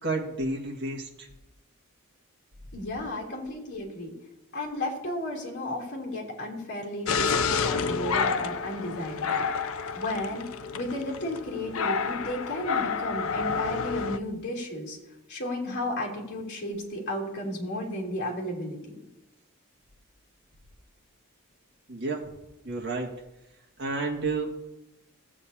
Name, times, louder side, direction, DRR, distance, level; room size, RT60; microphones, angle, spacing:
voice 1, 0.0-1.3 21.9-22.3 22.6-23.1 23.8-24.5, right 3 dB, 50° right, -1 dB, 1.8 m, -30 dB
voice 2, 2.7-4.1 4.5-9.4 9.9-10.4 10.7-15.0 15.3-18.9, left 1 dB, 50° left, -2 dB, 3.1 m, -33 dB
sound 1, 7.1-14.2, left 5 dB, 65° left, 0.5 m, -29 dB
16.0 x 8.4 x 2.8 m, 0.94 s
head